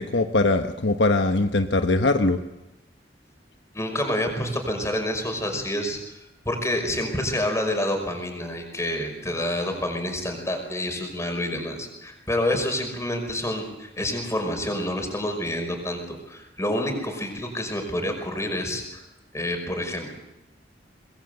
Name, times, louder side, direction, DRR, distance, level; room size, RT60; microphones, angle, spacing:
voice 1, 0.0-2.4, left 2 dB, 70° left, 6 dB, 1.2 m, -21 dB
voice 2, 3.7-6.0 6.5-19.0 19.3-20.1, left 1 dB, 15° left, 4 dB, 5.5 m, -28 dB
23.5 x 21.0 x 7.9 m, 0.92 s
head